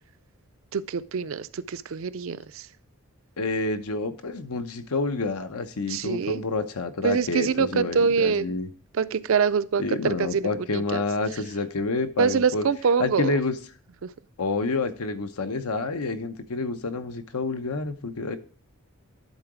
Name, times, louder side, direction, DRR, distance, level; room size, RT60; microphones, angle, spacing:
voice 1, 0.7-2.7 5.9-6.4 7.0-8.4 9.0-11.0 12.2-13.3 14.0-14.1, right 6 dB, 65° right, 15 dB, 0.4 m, -25 dB
voice 2, 3.4-8.7 9.8-12.7 13.0-13.6 14.4-18.4, left 3 dB, 90° left, 9 dB, 0.8 m, -28 dB
11.0 x 3.9 x 4.8 m, 0.41 s
head